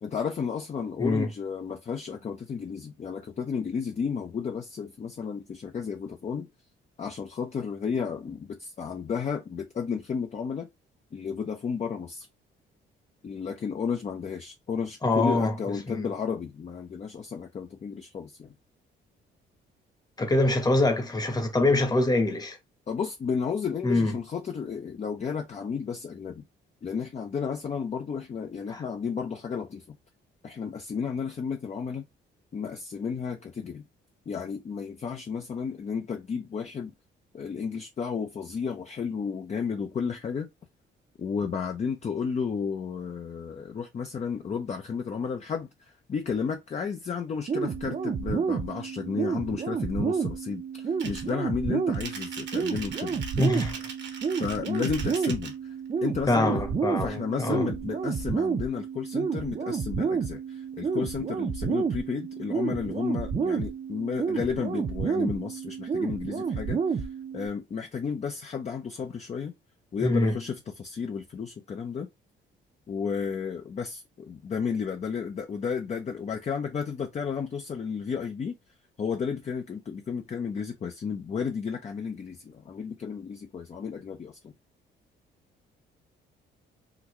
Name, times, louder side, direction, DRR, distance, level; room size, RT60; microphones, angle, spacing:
voice 1, 0.0-6.5 7.0-10.7 11.1-12.3 13.2-18.5 22.9-26.4 26.8-30.0 30.4-32.1 32.5-33.8 34.3-36.9 37.3-40.5 41.2-53.2 54.4-55.7 56.0-56.6 57.0-67.1 67.3-69.5 69.9-72.1 72.9-78.6 79.0-84.5, left 6 dB, 35° left, 0.6 m, -32 dB
voice 2, 15.0-15.5 15.9-16.1 20.2-22.6 23.8-24.1 28.7-28.8 53.4-53.8 56.3-57.6 70.0-70.3, left 2 dB, 20° left, 1.0 m, -24 dB
sound 1, 47.5-67.5, right 6 dB, 35° right, 0.6 m, -30 dB
sound 2, 51.0-51.3 51.9-55.5, right 5 dB, 65° right, 1.1 m, -40 dB
3.9 x 2.2 x 3.0 m
cardioid pair, 90°, 20 cm